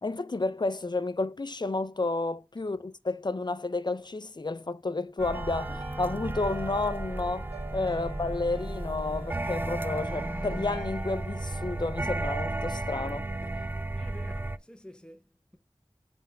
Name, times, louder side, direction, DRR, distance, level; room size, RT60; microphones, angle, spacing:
voice 1, 0.0-13.3, left 3 dB, 45° left, 0.5 m, -31 dB
sound 1, 5.2-14.6, right 2 dB, 20° right, 0.4 m, -34 dB
sound 2, 5.3-13.8, right 3 dB, 90° right, 1.8 m, -48 dB
Bowed string instrument, 7.7-11.1, left 1 dB, 30° left, 2.9 m, -43 dB
voice 2, 13.9-15.6, left 1 dB, 10° left, 0.8 m, -50 dB
8.4 x 3.5 x 3.3 m
wide cardioid pair, 45°, 10 cm